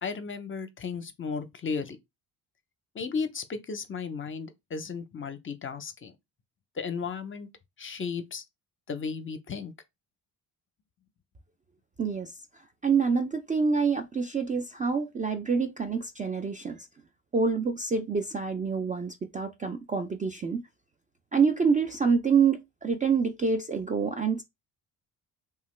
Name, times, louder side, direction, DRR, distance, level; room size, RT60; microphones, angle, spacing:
voice 1, 0.0-2.0 2.9-6.1 6.8-7.5 7.8-8.4 8.9-9.7, left 5 dB, 30° left, 0.5 m, -34 dB
voice 2, 12.0-12.3 12.8-16.9 17.3-20.6 21.3-24.4, right 5 dB, 20° right, 0.3 m, -26 dB
2.8 x 2.3 x 3.2 m
supercardioid pair, 75°, 40 cm